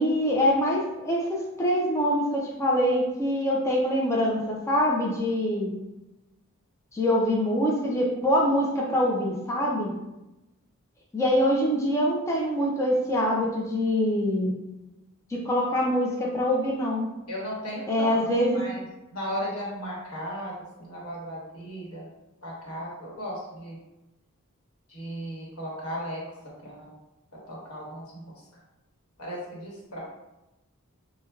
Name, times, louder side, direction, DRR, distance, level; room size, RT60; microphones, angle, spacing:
voice 1, 0.0-5.7 6.9-9.9 11.1-14.5 15.3-17.1 17.9-18.6, equal, 15° left, -3 dB, 0.4 m, -24 dB
voice 2, 17.3-18.2 18.5-18.8 19.1-20.5 20.8-22.1 22.4-23.8 24.9-26.2 26.6-26.9 27.3-28.2 29.2-30.0, equal, 80° left, -5 dB, 1.1 m, -36 dB
4.3 x 2.1 x 2.3 m, 0.98 s
head